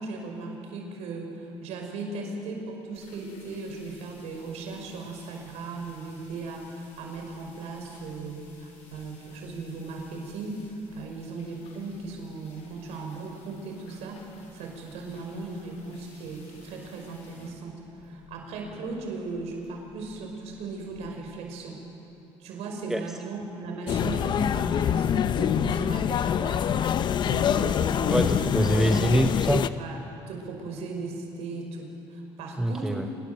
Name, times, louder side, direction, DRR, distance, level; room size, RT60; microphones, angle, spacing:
voice 1, 0.0-10.6 10.9-14.2 14.5-21.8 22.4-28.6 29.8-30.0 30.3-33.1, right 3 dB, 70° right, 2 dB, 5.4 m, -37 dB
sound 1, 2.9-21.2, left 3 dB, 70° left, 6.3 m, -54 dB
sound 2, 23.9-29.7, left 9 dB, 40° left, 0.7 m, -25 dB
voice 2, 28.1-29.7 32.6-33.1, right 1 dB, 5° right, 5 dB, 0.7 m, -24 dB
25.5 x 22.0 x 7.9 m, 2.9 s
cardioid pair, 120°, 11 cm